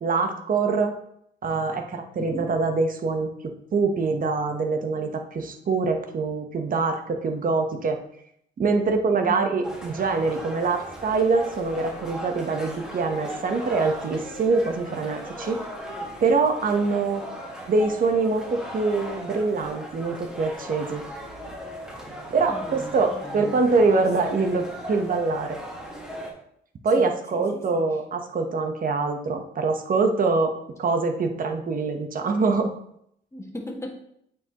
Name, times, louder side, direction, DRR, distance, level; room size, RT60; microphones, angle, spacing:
voice 1, 0.0-0.9 1.4-3.3 3.7-8.0 8.6-15.6 16.2-17.2 17.6-21.0 22.3-25.6 26.8-30.5 30.8-32.7, right 4 dB, 45° right, 5 dB, 1.0 m, -24 dB
voice 2, 2.2-2.5 9.2-9.5 22.4-23.6 23.9-24.7 27.0-27.9 33.3-33.9, left 1 dB, 15° left, 0 dB, 1.7 m, -38 dB
sound 1, 9.6-26.3, equal, 5° right, 1.7 m, -37 dB
8.6 x 4.8 x 3.0 m, 0.72 s
cardioid pair, 90°, 20 cm